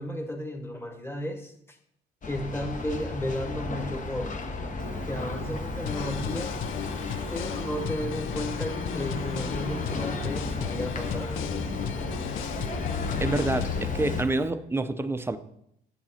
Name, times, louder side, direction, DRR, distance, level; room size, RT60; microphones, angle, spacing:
voice 1, 0.0-1.8 2.2-4.4 5.1-6.6 7.3-11.6, equal, 10° left, 5 dB, 1.4 m, -34 dB
sound 1, 2.2-14.2, left 4 dB, 40° left, 1.0 m, -33 dB
Bird, 4.8-14.5, right 7 dB, 80° right, 0.7 m, -45 dB
sound 2, 5.9-13.8, left 11 dB, 90° left, 0.4 m, -35 dB
voice 2, 13.2-15.4, right 2 dB, 10° right, 10 dB, 0.6 m, -27 dB
8.6 x 7.2 x 4.2 m, 0.74 s
cardioid pair, 90°, 20 cm